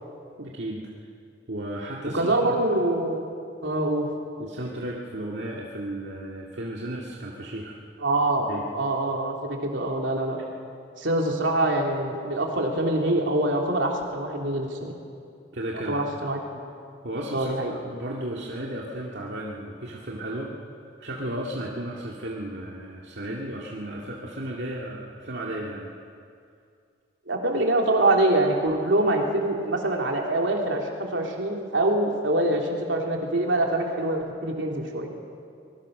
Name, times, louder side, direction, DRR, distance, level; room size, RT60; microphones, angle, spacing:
voice 1, 0.4-0.9 1.5-2.6 4.4-7.8 8.5-8.6 15.5-16.0 17.0-25.9, right 1 dB, 65° right, -3 dB, 2.1 m, -34 dB
voice 2, 2.1-3.2 3.6-4.1 8.0-10.4 11.0-14.9 15.9-16.4 17.3-17.7 27.3-35.1, right 1 dB, 80° right, 1 dB, 3.4 m, -24 dB
24.5 x 21.0 x 6.6 m, 2.3 s
head